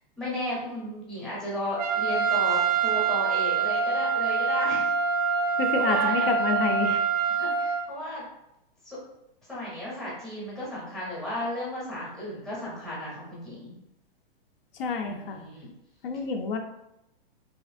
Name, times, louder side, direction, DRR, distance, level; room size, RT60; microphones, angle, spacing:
voice 1, 0.2-4.9 5.8-6.3 7.4-8.2 8.8-9.0 9.5-13.8 15.0-15.7, left 1 dB, ahead, -6 dB, 0.6 m, -34 dB
Trumpet, 1.8-7.8, right 6 dB, 40° right, 0.4 m, -25 dB
voice 2, 5.6-7.0 14.7-15.5 16.0-16.6, left 4 dB, 70° left, 4 dB, 0.5 m, -28 dB
2.8 x 2.5 x 2.5 m, 0.87 s
hypercardioid pair, 150°, 29 cm